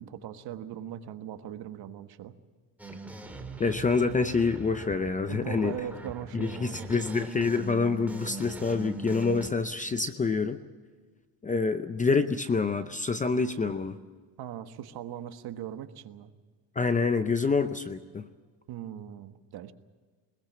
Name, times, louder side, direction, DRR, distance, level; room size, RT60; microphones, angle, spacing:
voice 1, 0.0-2.3 5.3-6.9 14.4-16.3 18.7-19.7, right 10 dB, 50° right, 8 dB, 1.5 m, -40 dB
sound 1, 2.8-9.5, right 2 dB, 5° right, 2.3 m, -41 dB
voice 2, 3.6-5.7 6.3-10.6 11.4-14.0 16.8-18.3, left 4 dB, 15° left, 10 dB, 0.6 m, -27 dB
21.0 x 21.0 x 7.4 m, 1.5 s
cardioid pair, 150°, 49 cm